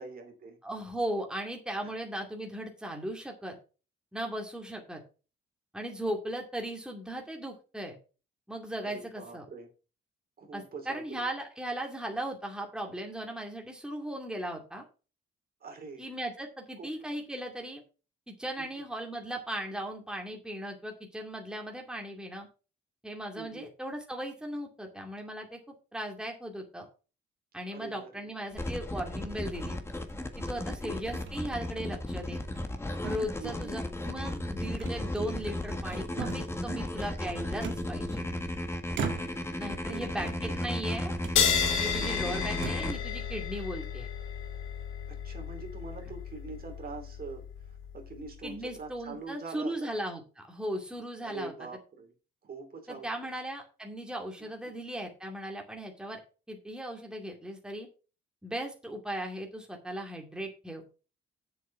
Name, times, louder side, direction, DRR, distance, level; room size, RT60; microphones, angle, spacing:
voice 1, 0.0-0.6 8.8-9.7 10.4-11.2 15.6-16.1 16.8-16.9 18.6-18.9 23.3-23.7 27.7-28.3 30.7-31.0 33.4-33.8 39.8-40.5 42.0-42.3 45.1-49.9 51.2-52.1 52.4-53.3 54.4-54.5, right 4 dB, 50° right, 4 dB, 3.0 m, -44 dB
voice 2, 0.6-3.6 4.1-5.0 5.7-8.0 8.5-9.5 10.5-14.8 16.0-17.8 18.3-22.5 23.0-25.6 25.9-26.9 27.5-29.8 30.4-32.4 33.0-38.2 39.6-41.1 41.8-44.1 48.4-51.5 52.9-56.2 56.5-57.9 58.4-60.8, right 1 dB, 5° right, 1 dB, 2.3 m, -37 dB
sound 1, 28.4-28.9 29.7-30.4 31.1-31.4 31.8-31.9 32.4-32.8 33.0-33.7 34.8-35.5 35.9-36.6 37.6-38.4 38.9-39.6 40.1-40.8 41.2-41.4 42.0-42.1 42.5-43.0, right 5 dB, 70° right, 1.7 m, -40 dB
sound 2, 28.5-42.9, left 1 dB, 15° left, 1.6 m, -35 dB
sound 3, 41.4-48.3, left 7 dB, 85° left, 1.9 m, -32 dB
7.6 x 6.9 x 5.5 m, 0.34 s
cardioid pair, 90°, 20 cm